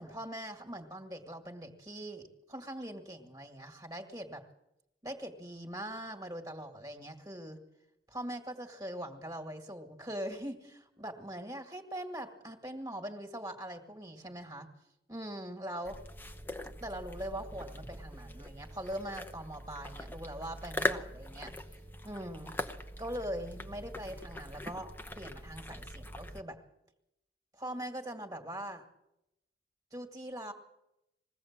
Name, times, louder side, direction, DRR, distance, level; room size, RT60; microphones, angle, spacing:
voice 1, 0.0-4.4 5.0-7.6 8.1-14.7 15.1-16.0 16.8-22.6 23.0-26.6 27.5-28.8 29.9-30.5, right 1 dB, 20° right, 3 dB, 2.1 m, -42 dB
sound 1, 15.9-26.4, left 1 dB, 10° left, 0.9 m, -41 dB
21.5 x 16.5 x 7.5 m, 0.86 s
head